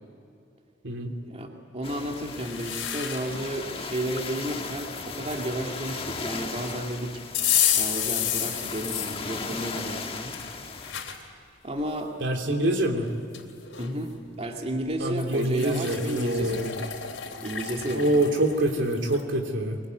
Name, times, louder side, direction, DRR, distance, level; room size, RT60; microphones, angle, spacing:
voice 1, 1.3-7.2 7.7-10.4 11.6-12.2 13.8-16.9 17.4-18.1, right 1 dB, 35° right, 1 dB, 2.3 m, -32 dB
sound 1, 1.8-10.9, left 4 dB, 30° left, 1.5 m, -37 dB
sound 2, 2.3-3.4 3.9-5.5 7.3-9.2 9.8-11.2 11.8-11.9 13.0-13.1 13.3-13.9 15.2-19.2, left 10 dB, 90° left, 3.2 m, -31 dB
voice 2, 12.2-13.1 15.0-16.7 17.9-19.8, right 1 dB, 75° right, 3 dB, 3.1 m, -25 dB
23.5 x 23.0 x 9.5 m, 2.4 s
head